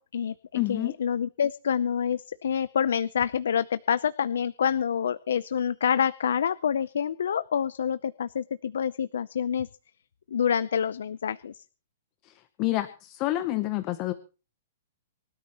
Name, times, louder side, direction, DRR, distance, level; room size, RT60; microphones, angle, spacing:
voice 1, 0.0-9.7 10.3-11.6, left 8 dB, 75° left, 15 dB, 0.6 m, -27 dB
voice 2, 0.5-0.9 12.2-14.1, left 17 dB, 20° left, 11 dB, 0.9 m, -28 dB
25.0 x 13.0 x 3.0 m, 0.35 s
hypercardioid pair, 180°, 0 cm